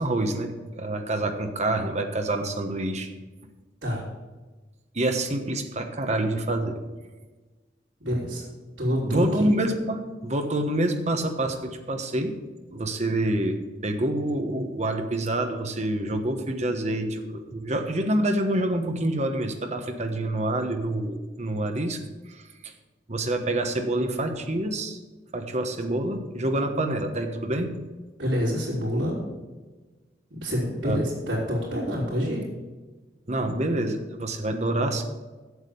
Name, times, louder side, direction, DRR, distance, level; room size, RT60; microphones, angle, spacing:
voice 1, 0.0-3.1 4.9-6.8 9.0-12.3 12.7-13.6 13.8-22.0 22.3-22.7 23.1-25.0 25.3-27.7 30.8-31.0 33.3-35.1, right 1 dB, 40° right, 5 dB, 1.2 m, -27 dB
voice 2, 8.0-8.4 8.8-9.5 28.2-29.2 30.3-32.4, equal, 85° right, -9 dB, 3.7 m, -27 dB
8.2 x 7.4 x 8.5 m, 1.3 s
head